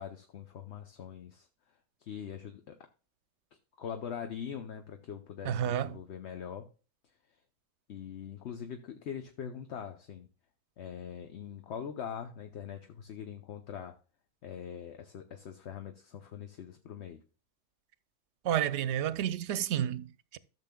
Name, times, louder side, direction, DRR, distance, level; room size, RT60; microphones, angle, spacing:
voice 1, 0.0-1.5 2.0-2.8 3.5-6.7 7.9-10.3 10.8-14.0 14.4-17.2, left 8 dB, 65° left, 1.0 m, -42 dB
voice 2, 5.4-5.9 18.4-20.4, right 10 dB, 70° right, 0.9 m, -31 dB
14.0 x 6.9 x 2.2 m
omnidirectional pair, 1.2 m